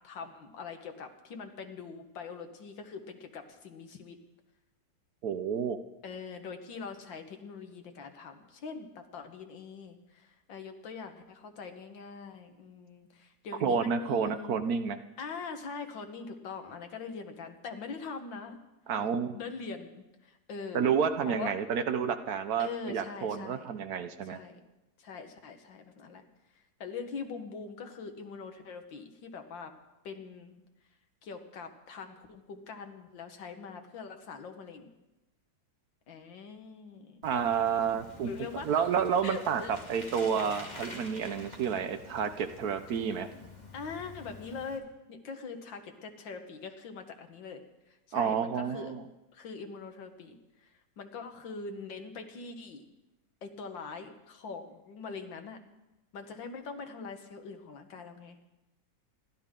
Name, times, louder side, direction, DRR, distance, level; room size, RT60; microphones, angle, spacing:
voice 1, 0.0-4.2 6.0-14.6 15.2-18.6 19.3-20.9 21.2-21.5 22.6-23.7 24.2-24.6 25.0-26.2 26.6-29.7 30.0-30.6 31.2-34.9 36.1-37.2 38.2-38.8 39.2-39.7 43.7-48.9 49.3-52.8 53.4-55.6 56.1-58.4, left 5 dB, 85° left, 6 dB, 2.1 m, -43 dB
voice 2, 5.2-5.8 13.6-15.0 18.9-19.4 20.7-24.4 37.2-38.3 38.6-43.3 48.1-49.0, right 7 dB, 65° right, 9 dB, 1.1 m, -30 dB
Bicycle, 37.2-44.8, left 2 dB, 25° left, 2.2 m, -48 dB
27.5 x 12.0 x 3.7 m, 1.0 s
omnidirectional pair, 2.0 m